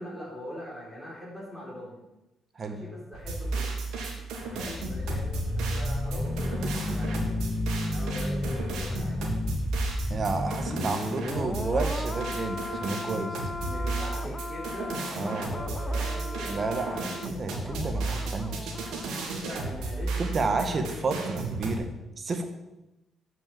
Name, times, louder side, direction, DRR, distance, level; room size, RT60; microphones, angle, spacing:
voice 1, 0.0-2.0 2.6-3.8 4.5-9.4 13.6-17.5 19.3-21.1, equal, 5° right, -6 dB, 3.7 m, -42 dB
sound 1, 3.1-21.7, right 3 dB, 85° right, 1.9 m, -33 dB
sound 2, 4.4-19.4 19.7-19.8, left 2 dB, 20° left, 0.5 m, -34 dB
voice 2, 10.1-13.5 15.1-15.5 16.5-18.7 20.2-22.5, right 3 dB, 40° right, 6 dB, 1.4 m, -31 dB
7.3 x 6.1 x 7.4 m, 0.97 s
cardioid pair, 90°, 0 cm